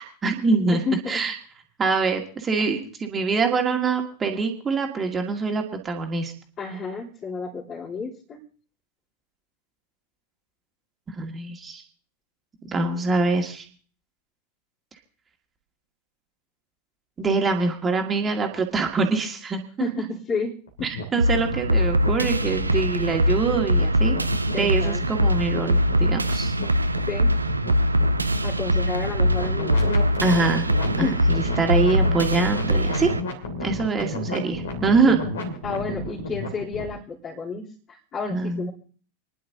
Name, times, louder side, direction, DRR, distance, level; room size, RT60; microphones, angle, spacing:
voice 1, 0.0-0.8 1.1-1.3 1.8-6.3 11.1-11.8 12.6-13.7 17.2-19.6 20.8-24.2 24.6-26.5 30.2-30.7 31.0-33.1 33.6-35.2 38.3-38.7, right 4 dB, 20° right, 3 dB, 2.1 m, -24 dB
voice 2, 0.7-1.2 6.6-8.4 19.8-20.5 20.8-20.9 24.5-25.0 27.1-27.3 28.4-29.8 31.0-31.2 35.1-35.2 35.6-38.7, left 4 dB, 30° left, -10 dB, 3.4 m, -31 dB
sound 1, 20.7-36.9, left 1 dB, 65° left, 2.8 m, -33 dB
sound 2, 21.2-33.2, equal, 80° right, 0.7 m, -22 dB
29.0 x 11.0 x 2.8 m, 0.44 s
figure-of-eight pair, 90°, 0 cm